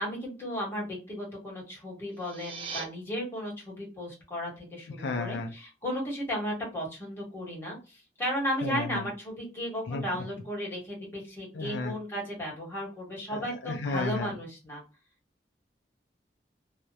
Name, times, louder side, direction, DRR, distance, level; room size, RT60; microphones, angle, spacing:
voice 1, 0.0-14.8, equal, 15° left, -4 dB, 1.3 m, -35 dB
sound 1, 2.0-2.9, right 4 dB, 30° right, 0.4 m, -39 dB
voice 2, 5.0-5.5 8.6-9.1 9.9-10.3 11.5-11.9 13.3-14.3, left 3 dB, 80° left, 4 dB, 0.4 m, -33 dB
2.9 x 2.0 x 2.2 m, 0.30 s
head